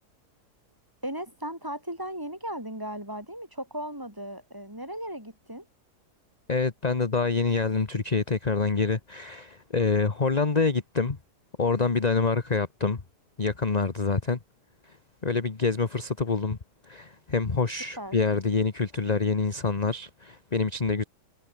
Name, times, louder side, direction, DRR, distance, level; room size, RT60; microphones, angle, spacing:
voice 1, 1.0-5.7 18.0-18.2, right 1 dB, 10° right, 4.1 m, -36 dB
voice 2, 6.5-11.2 11.6-13.0 13.4-14.4 15.2-16.6 16.8-21.0, left 4 dB, 25° left, 1.3 m, -26 dB
omnidirectional pair, 1.7 m